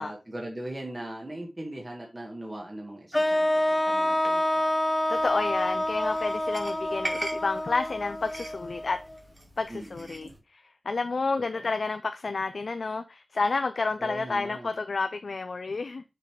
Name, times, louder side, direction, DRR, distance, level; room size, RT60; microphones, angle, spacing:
voice 1, 0.0-4.7 9.7-10.2 11.6-11.7 14.0-14.7, right 1 dB, 25° right, 1.8 m, -40 dB
sound 1, 3.1-9.2, left 1 dB, 25° left, 0.5 m, -27 dB
voice 2, 5.1-9.0 9.6-16.0, left 3 dB, 80° left, 0.5 m, -30 dB
sound 2, 5.2-10.4, right 2 dB, 45° right, 2.3 m, -41 dB
6.8 x 4.1 x 4.7 m
wide cardioid pair, 65°, 0 cm